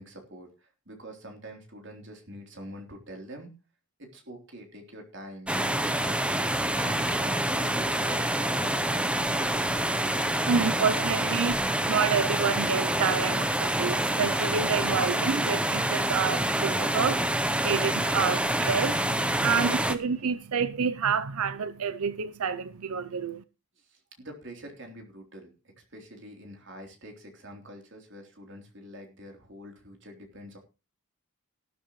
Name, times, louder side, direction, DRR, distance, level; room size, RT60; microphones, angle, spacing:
voice 1, 0.0-3.5 4.0-6.3 6.7-7.4 7.7-9.9 23.8-25.5 25.8-30.6, right 1 dB, 55° right, 3.5 m, -45 dB
sound 1, 5.5-20.0, right 1 dB, 5° right, 0.7 m, -27 dB
voice 2, 10.2-23.4, right 6 dB, 85° right, 0.6 m, -29 dB
sound 2, 15.0-20.3, left 3 dB, 30° left, 5.4 m, -57 dB
14.5 x 12.5 x 3.1 m
head